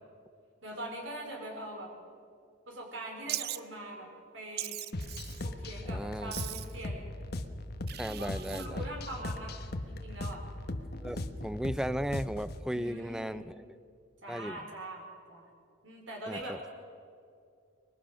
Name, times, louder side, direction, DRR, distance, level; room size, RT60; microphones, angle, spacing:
voice 1, 0.6-1.9 2.7-4.1 4.3-4.8 5.4-7.0 8.1-9.6 9.9-10.4 12.7-13.5 14.2-15.5 15.8-16.7, right 1 dB, 70° right, 0 dB, 4.6 m, -42 dB
Wild animals, 3.3-3.6 4.6-5.5 6.3-6.8 7.9-8.7, right 14 dB, 50° right, 0.5 m, -39 dB
sound 1, 4.9-12.6, left 1 dB, 50° left, 1.2 m, -38 dB
voice 2, 5.9-6.3 8.0-8.8 11.0-13.5 14.3-14.6 16.3-16.6, equal, 5° right, 15 dB, 0.5 m, -36 dB
24.5 x 22.0 x 6.4 m, 2.5 s
head